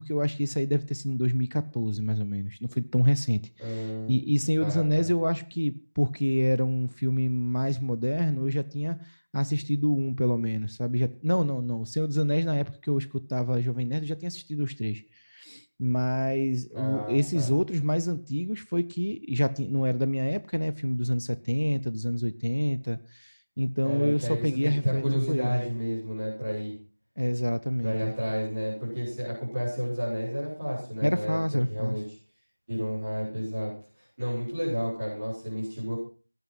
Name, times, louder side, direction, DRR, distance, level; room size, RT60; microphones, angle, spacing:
voice 1, 0.0-9.0 9.3-15.0 15.3-25.6 27.2-28.1 31.0-32.0, equal, 65° left, 15 dB, 0.9 m, -27 dB
voice 2, 3.6-4.1 4.6-5.1 16.7-17.5 23.8-26.7 27.8-31.4 31.7-32.0 32.7-36.0, equal, 10° right, -9 dB, 4.3 m, -31 dB
17.0 x 9.3 x 5.8 m, 0.36 s
figure-of-eight pair, 180°, 0 cm